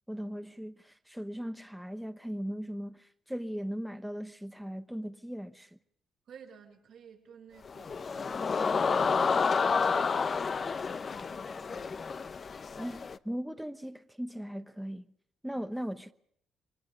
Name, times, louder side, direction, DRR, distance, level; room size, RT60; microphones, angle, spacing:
voice 1, 0.1-5.7 12.8-15.0 15.4-16.1, equal, 5° right, 1.1 m, -38 dB
voice 2, 6.3-12.2 15.5-15.6, right 7 dB, 70° right, 5.3 m, -54 dB
sound 1, 7.6-13.2, left 5 dB, 40° left, 0.9 m, -30 dB
28.5 x 24.5 x 5.3 m
cardioid pair, 90°, 0 cm